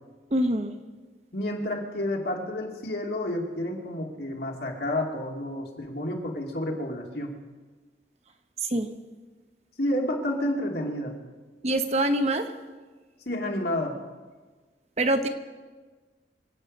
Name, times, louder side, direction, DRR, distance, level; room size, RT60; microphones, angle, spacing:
voice 1, 0.3-0.7 8.6-8.9 11.6-12.5 15.0-15.3, right 1 dB, 35° right, 7 dB, 0.9 m, -24 dB
voice 2, 1.3-7.3 9.8-11.1 13.3-14.0, left 1 dB, 60° left, 0 dB, 2.5 m, -30 dB
26.5 x 8.9 x 5.4 m, 1.4 s
head